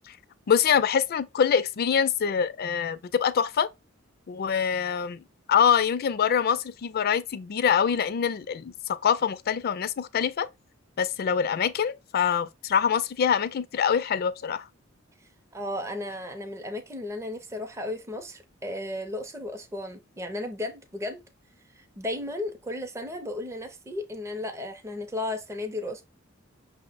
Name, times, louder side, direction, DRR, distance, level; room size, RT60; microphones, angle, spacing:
voice 1, 0.5-3.7 4.3-5.2 5.5-10.5 11.0-14.6, left 7 dB, 50° left, 0.4 m, -25 dB
voice 2, 15.5-21.2 21.7-26.0, left 1 dB, 15° right, 0.5 m, -34 dB
5.7 x 2.0 x 4.0 m
head